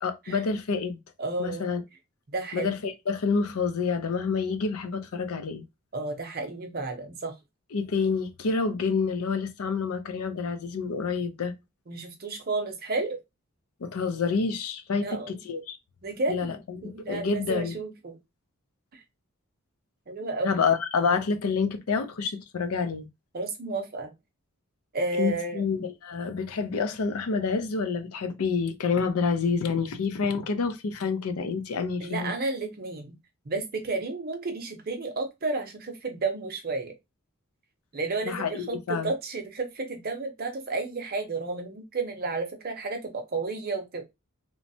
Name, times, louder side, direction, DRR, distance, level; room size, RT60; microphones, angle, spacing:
voice 1, 0.0-1.0 1.4-1.8 2.5-5.6 7.7-11.5 13.8-15.8 16.3-17.8 20.4-23.1 25.2-32.3 38.3-39.1, left 5 dB, 80° left, 0.5 m, -28 dB
voice 2, 1.2-1.7 2.3-2.7 5.9-7.3 11.9-13.2 15.0-15.4 16.0-16.6 16.8-18.2 18.9-19.0 20.1-20.6 23.3-24.1 24.9-25.6 32.0-33.2 33.5-36.9 37.9-44.0, right 3 dB, 45° right, 0.6 m, -32 dB
3.1 x 2.0 x 2.6 m
head